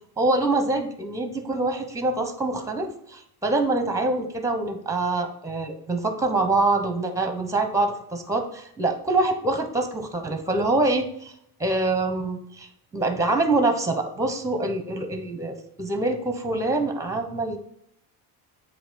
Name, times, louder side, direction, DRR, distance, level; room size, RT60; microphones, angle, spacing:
voice 1, 0.2-11.3 11.6-17.6, right 2 dB, 5° right, 7 dB, 1.0 m, -25 dB
8.0 x 2.9 x 5.8 m, 0.73 s
cardioid pair, 120°, 43 cm